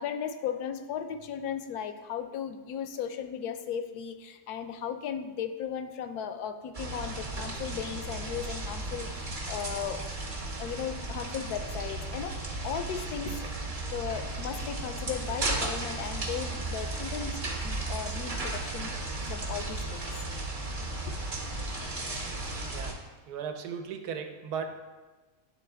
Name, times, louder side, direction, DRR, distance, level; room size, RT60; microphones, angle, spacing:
voice 1, 0.0-10.0 10.6-13.6 13.9-18.9 19.2-20.1, left 8 dB, 75° left, 8 dB, 1.0 m, -36 dB
sound 1, 6.7-22.9, right 2 dB, 35° right, 1.0 m, -35 dB
voice 2, 22.6-23.0 23.3-24.8, right 6 dB, 75° right, 5 dB, 1.2 m, -37 dB
10.0 x 3.8 x 3.3 m, 1.3 s
omnidirectional pair, 1.7 m